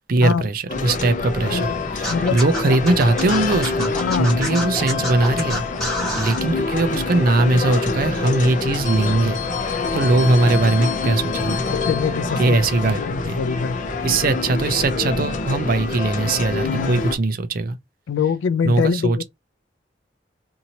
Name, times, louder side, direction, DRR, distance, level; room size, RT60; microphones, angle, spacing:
voice 1, 0.1-3.9 4.2-5.6 6.1-11.6 12.4-13.4 14.0-17.8 18.6-19.2, right 2 dB, 50° right, 0.5 m, -20 dB
sound 1, 0.7-17.2, left 3 dB, 45° left, 0.6 m, -25 dB
Scratching (performance technique), 2.0-6.4, equal, 5° left, 1.3 m, -28 dB
voice 2, 2.1-2.4 3.9-4.4 11.7-12.6 12.8-13.8 16.6-17.0 18.1-19.2, left 6 dB, 85° left, 0.3 m, -24 dB
2.7 x 2.7 x 2.8 m
head